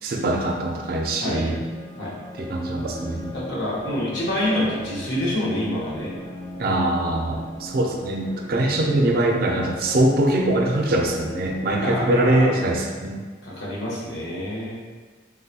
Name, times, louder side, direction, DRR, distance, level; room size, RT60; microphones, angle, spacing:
voice 1, 0.0-1.6 2.4-3.3 6.6-13.2, right 1 dB, 55° right, 2 dB, 0.4 m, -22 dB
sound 1, 1.4-12.4, left 1 dB, 20° left, 0.4 m, -38 dB
voice 2, 3.3-6.2 8.6-8.9 11.8-12.6 13.4-14.8, left 1 dB, 80° left, -7 dB, 1.0 m, -27 dB
3.8 x 2.2 x 2.8 m, 1.4 s
head